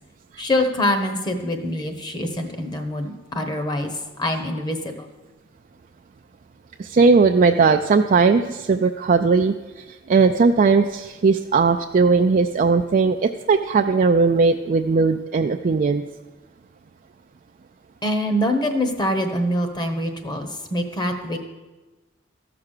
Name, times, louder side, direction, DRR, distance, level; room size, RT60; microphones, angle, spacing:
voice 1, 0.4-3.9 4.2-5.1 18.0-21.4, left 1 dB, 20° left, 6 dB, 1.1 m, -24 dB
voice 2, 6.8-9.5 10.1-16.0, right 4 dB, 45° right, 5 dB, 0.4 m, -18 dB
14.0 x 6.0 x 6.6 m, 1.2 s
head